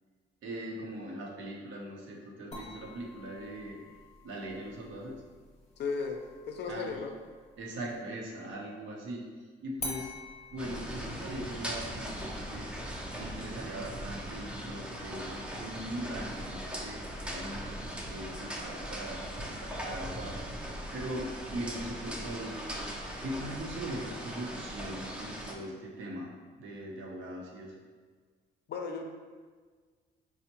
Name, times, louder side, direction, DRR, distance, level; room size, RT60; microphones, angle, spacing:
voice 1, 0.4-3.8 4.2-5.2 6.7-6.9 7.6-10.1 10.5-12.8 13.1-17.0 17.3-22.6 23.2-26.3 26.6-27.7, right 1 dB, 75° right, -2 dB, 0.7 m, -40 dB
sound 1, 2.5-8.1 9.8-14.8, left 2 dB, 30° left, 0.8 m, -48 dB
voice 2, 5.8-6.2 6.5-7.1 28.7-29.1, left 4 dB, 55° left, 3 dB, 0.5 m, -35 dB
sound 2, 10.6-25.5, equal, 5° right, 0.5 m, -39 dB
4.2 x 2.1 x 2.9 m, 1.5 s
cardioid pair, 90°, 20 cm